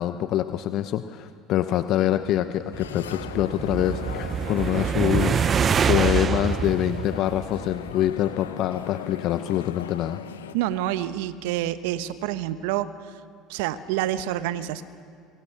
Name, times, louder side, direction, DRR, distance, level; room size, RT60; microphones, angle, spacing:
voice 1, 0.0-5.5 5.9-10.2, left 12 dB, 55° left, 10 dB, 0.8 m, -25 dB
sound 1, 2.6-8.0, right 7 dB, 35° right, 0.8 m, -26 dB
sound 2, 2.7-10.5, left 9 dB, 85° left, 0.9 m, -39 dB
voice 2, 10.5-12.9 13.5-14.8, right 13 dB, 70° right, 12 dB, 1.1 m, -27 dB
24.0 x 22.5 x 6.0 m, 2.3 s
hypercardioid pair, 70°, 0 cm